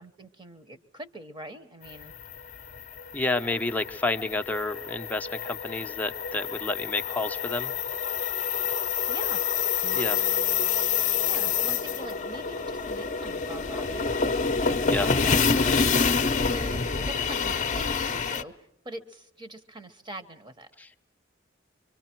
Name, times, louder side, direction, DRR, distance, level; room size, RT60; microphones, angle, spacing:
voice 1, 0.0-2.1 8.7-9.4 11.0-14.3 15.0-15.7 16.4-20.7, right 1 dB, 25° right, 8 dB, 1.2 m, -43 dB
sound 1, 2.0-18.4, left 6 dB, 40° left, 0.8 m, -27 dB
voice 2, 3.1-7.7 9.9-10.2 14.9-15.1 20.8-21.0, left 2 dB, 10° left, 6 dB, 0.7 m, -30 dB
Bass guitar, 9.8-16.1, right 8 dB, 70° right, 5.6 m, -51 dB
25.0 x 24.5 x 4.5 m, 0.84 s
head